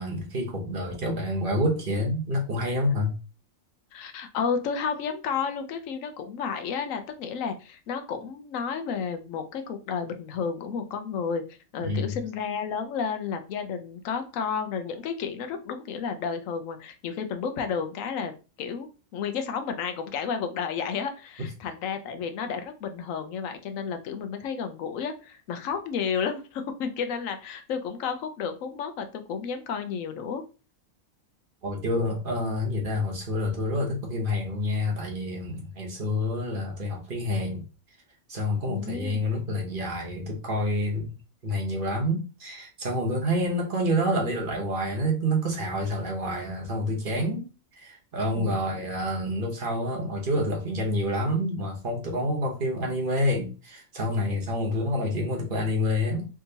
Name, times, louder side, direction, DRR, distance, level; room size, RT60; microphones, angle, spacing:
voice 1, 0.0-3.1 11.8-12.2 31.6-37.6 38.3-41.1 41.4-47.5 47.8-56.3, left 1 dB, 45° right, 0 dB, 1.0 m, -28 dB
voice 2, 3.9-30.4 38.7-39.3 48.3-48.8, left 6 dB, 85° left, 8 dB, 1.0 m, -32 dB
3.5 x 2.8 x 2.7 m, 0.33 s
omnidirectional pair, 1.3 m